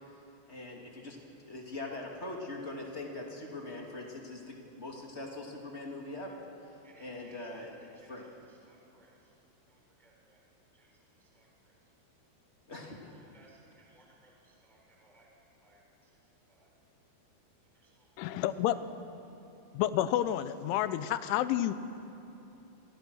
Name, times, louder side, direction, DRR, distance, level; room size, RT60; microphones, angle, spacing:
voice 1, 0.5-1.2 1.4-8.3 12.7-13.0, left 2 dB, 20° left, 0 dB, 1.8 m, -42 dB
voice 2, 6.8-9.3 9.7-10.4 10.7-11.7 12.9-16.1 16.5-16.7 17.7-18.1, right 2 dB, ahead, -1 dB, 3.4 m, -64 dB
voice 3, 18.2-18.8 19.7-21.7, left 12 dB, 85° left, 12 dB, 3.3 m, -29 dB
27.0 x 25.0 x 6.4 m, 2.9 s
omnidirectional pair, 5.4 m